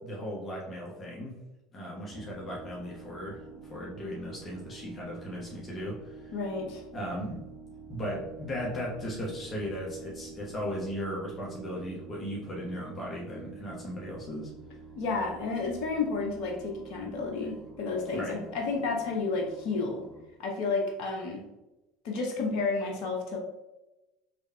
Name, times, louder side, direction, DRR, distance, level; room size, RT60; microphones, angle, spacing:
voice 1, 0.0-1.4 1.7-6.3 6.9-7.4 7.9-14.5 18.1-18.4, equal, 35° left, -4 dB, 1.2 m, -37 dB
sound 1, 2.1-20.2, right 4 dB, 5° right, 1.2 m, -48 dB
voice 2, 6.3-6.8 15.0-20.0 20.4-21.4 22.0-23.4, left 4 dB, 60° left, 0 dB, 0.9 m, -31 dB
5.1 x 3.3 x 2.3 m, 0.98 s
figure-of-eight pair, 70°, 0 cm